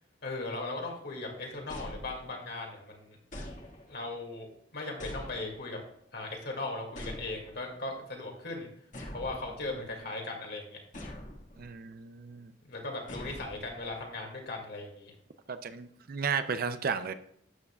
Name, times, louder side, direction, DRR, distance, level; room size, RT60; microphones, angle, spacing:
voice 1, 0.2-3.2 3.9-5.8 6.1-8.7 9.1-10.8 12.6-15.1, left 2 dB, 60° left, 1 dB, 2.3 m, -38 dB
sound 1, 1.7-2.6 3.3-4.1 5.0-5.9 6.9-7.8 8.9-10.0 10.9-11.7 13.1-14.0, left 1 dB, 45° left, 1.7 m, -44 dB
voice 2, 11.6-12.5 15.5-17.1, right 6 dB, 50° right, 10 dB, 0.5 m, -34 dB
12.5 x 9.3 x 2.4 m, 0.69 s
head